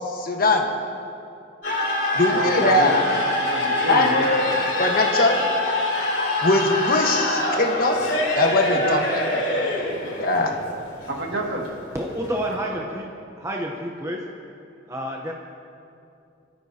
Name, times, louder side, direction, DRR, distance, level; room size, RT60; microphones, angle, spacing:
voice 1, 0.1-0.7 2.1-3.0 3.9-4.4 4.8-5.4 6.4-8.0 8.4-9.2 10.2-10.5, left 2 dB, 50° left, 2 dB, 1.4 m, -21 dB
sound 1, 1.6-12.5, left 1 dB, 65° left, 3.4 m, -25 dB
voice 2, 2.3-4.7 8.6-9.0 9.3-9.6 11.1-11.7 12.5-13.0, right 1 dB, 65° right, -1 dB, 2.2 m, -30 dB
voice 3, 11.9-13.1 13.4-14.2 14.9-15.3, equal, 15° right, 0 dB, 0.9 m, -29 dB
24.5 x 13.5 x 2.9 m, 2.6 s
head